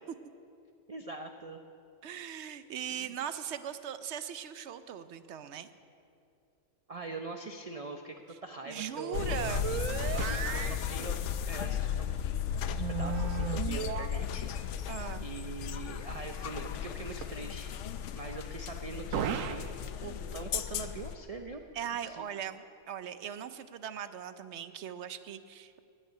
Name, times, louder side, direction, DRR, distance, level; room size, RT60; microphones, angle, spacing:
voice 1, 0.9-1.6 2.9-3.1 6.9-9.6 10.2-12.2 12.5-14.4 15.2-17.7 18.1-19.7 20.0-21.6 22.0-22.3, right 3 dB, 40° right, 5 dB, 0.5 m, -43 dB
voice 2, 2.0-5.7 8.7-9.7 14.9-15.2 21.7-25.8, right 9 dB, 65° right, 12 dB, 0.8 m, -39 dB
sound 1, 8.8-9.0 9.3-10.9 12.7-14.1 19.1-19.7 20.1-20.5, right 8 dB, 85° right, 1.1 m, -35 dB
sound 2, 9.1-21.2, left 8 dB, 70° left, 0.9 m, -35 dB
15.5 x 6.6 x 10.0 m, 2.6 s
omnidirectional pair, 1.3 m